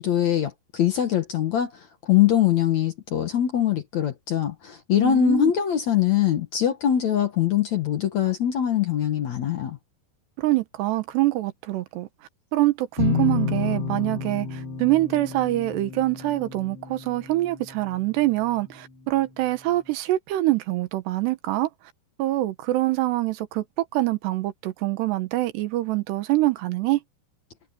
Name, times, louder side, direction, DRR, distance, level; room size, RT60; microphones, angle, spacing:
voice 1, 0.0-1.7 2.0-9.8, left 10 dB, 60° left, 2.0 m, -22 dB
voice 2, 5.0-5.5 10.4-12.1 12.5-21.7 22.2-27.0, right 17 dB, 85° right, 3.3 m, -25 dB
sound 1, 13.0-18.6, left 6 dB, 75° left, 5.6 m, -30 dB
omnidirectional pair, 4.8 m